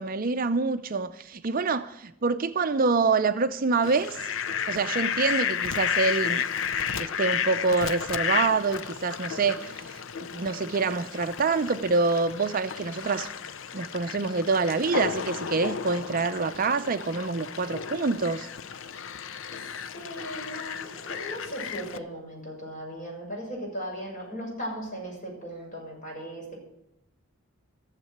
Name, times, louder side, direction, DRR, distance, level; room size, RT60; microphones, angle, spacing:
voice 1, 0.0-4.3 4.7-6.4 7.0-10.0 10.3-13.3 13.7-18.5, right 4 dB, 40° right, 0.5 m, -26 dB
Fowl, 3.8-22.0, left 7 dB, 60° left, 0.6 m, -33 dB
voice 2, 19.5-26.6, equal, 35° left, 6.8 m, -37 dB
15.0 x 7.4 x 9.2 m
head